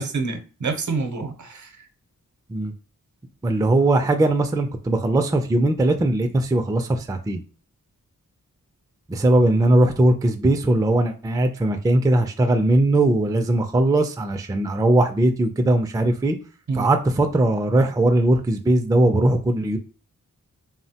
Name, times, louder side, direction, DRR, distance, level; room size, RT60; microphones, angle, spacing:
voice 1, 0.0-1.9 16.7-16.9, right 4 dB, 60° right, 7 dB, 0.7 m, -27 dB
voice 2, 3.4-7.4 9.1-16.4 16.7-19.8, right 1 dB, 10° right, 6 dB, 0.3 m, -19 dB
3.3 x 2.1 x 2.7 m, 0.36 s
wide cardioid pair, 65°, 33 cm